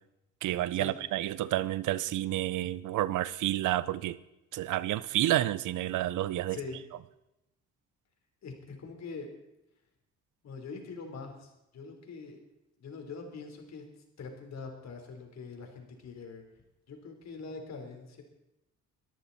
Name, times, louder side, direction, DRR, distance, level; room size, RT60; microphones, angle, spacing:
voice 1, 0.4-4.2 4.5-6.6, right 14 dB, 80° right, 0.7 m, -30 dB
voice 2, 8.4-9.3 10.4-12.4 12.8-13.8 14.2-16.4 16.9-18.2, left 4 dB, 60° left, 4.1 m, -43 dB
23.0 x 13.5 x 4.3 m
cardioid pair, 90°, 30 cm